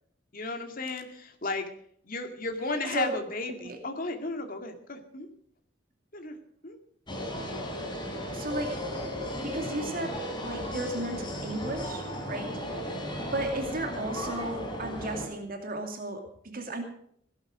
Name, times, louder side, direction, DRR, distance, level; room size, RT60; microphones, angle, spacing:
voice 1, 0.3-1.6 2.0-5.3 6.1-6.4 6.6-6.8, left 3 dB, 45° left, 5 dB, 2.2 m, -34 dB
voice 2, 2.9-3.2 3.6-3.8 7.8-8.8 9.2-16.8, right 2 dB, 50° right, 3 dB, 2.5 m, -35 dB
sound 1, 7.1-15.3, equal, 25° left, 4.0 m, -35 dB
17.0 x 13.0 x 5.0 m, 0.66 s
head